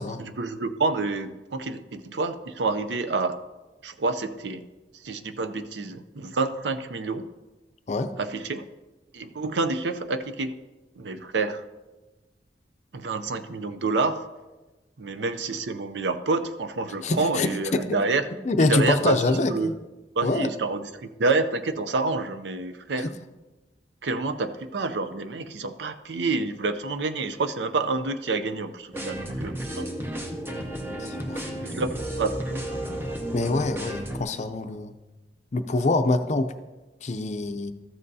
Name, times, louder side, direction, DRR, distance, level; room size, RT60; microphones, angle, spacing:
voice 1, 0.2-3.4 3.8-4.7 5.0-7.3 8.2-8.7 9.1-10.6 11.0-11.6 12.9-14.3 15.0-18.3 18.6-19.7 20.2-23.1 24.0-29.9 31.6-32.6, right 3 dB, 85° right, 10 dB, 0.6 m, -28 dB
voice 2, 17.0-18.0 18.4-19.7 20.2-20.5 23.0-23.1 31.0-31.5 33.3-34.9 35.5-36.5 37.0-37.7, left 2 dB, 40° left, 9 dB, 0.5 m, -25 dB
sound 1, 28.9-34.2, right 1 dB, 15° right, 0.8 m, -32 dB
13.5 x 7.6 x 2.7 m, 1.1 s
head